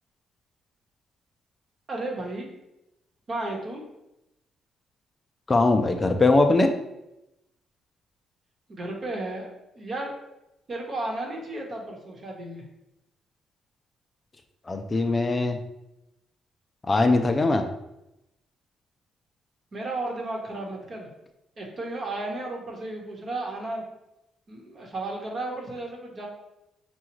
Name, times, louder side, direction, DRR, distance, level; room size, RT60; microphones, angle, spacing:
voice 1, 1.9-2.5 3.3-3.8 8.7-9.5 9.7-10.1 10.7-12.6 19.7-21.1 21.6-23.8 24.5-26.3, right 2 dB, 45° right, 0 dB, 1.1 m, -33 dB
voice 2, 5.5-6.7 14.7-15.6 16.9-17.6, left 2 dB, 25° left, 5 dB, 0.4 m, -21 dB
6.0 x 2.3 x 3.0 m, 0.90 s
cardioid pair, 90°, 0 cm